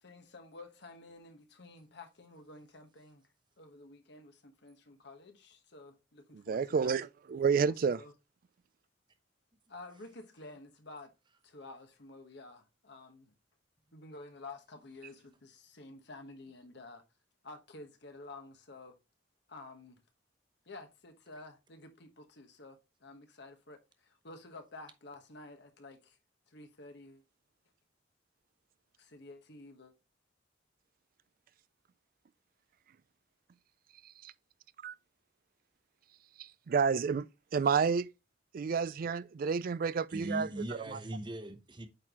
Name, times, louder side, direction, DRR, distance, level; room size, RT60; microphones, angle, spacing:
voice 1, 0.0-3.2 3.6-7.0 7.6-8.1 9.7-11.1 11.4-13.3 13.9-17.0 17.4-18.9 19.5-20.0 20.6-26.2 26.5-27.2 29.0-29.9, left 2 dB, 65° left, 1.2 m, -51 dB
voice 2, 6.3-8.0 34.2-34.3 34.8-34.9 36.4-38.1 38.5-40.5 40.9-41.0, right 6 dB, 50° right, 0.3 m, -30 dB
voice 3, 40.1-41.9, right 1 dB, 25° right, 0.9 m, -39 dB
8.7 x 4.0 x 2.9 m
head